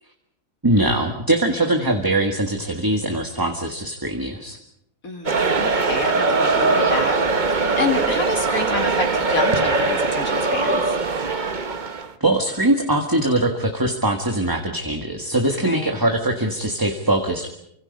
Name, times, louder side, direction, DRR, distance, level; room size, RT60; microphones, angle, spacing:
voice 1, 0.6-4.6 12.0-17.5, right 1 dB, 15° right, 3 dB, 1.8 m, -22 dB
voice 2, 5.0-7.1 7.4-10.9 15.6-15.9, left 3 dB, 60° left, 2 dB, 2.6 m, -28 dB
sound 1, 5.2-12.1, right 3 dB, 35° right, 1.2 m, -21 dB
28.5 x 25.5 x 5.4 m, 0.76 s
omnidirectional pair, 1.7 m